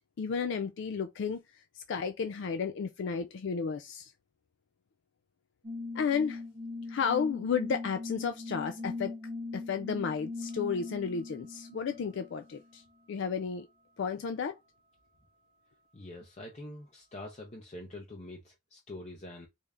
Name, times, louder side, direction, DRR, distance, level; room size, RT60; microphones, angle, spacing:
voice 1, 0.2-1.4 1.8-4.1 5.9-6.4 6.9-9.2 9.5-12.8 13.1-13.7 14.0-14.6, left 6 dB, 60° left, 0.3 m, -32 dB
sound 1, 5.6-12.7, left 3 dB, 25° right, 0.8 m, -40 dB
voice 2, 15.9-19.5, left 1 dB, 35° left, 0.6 m, -45 dB
3.3 x 2.7 x 3.5 m
head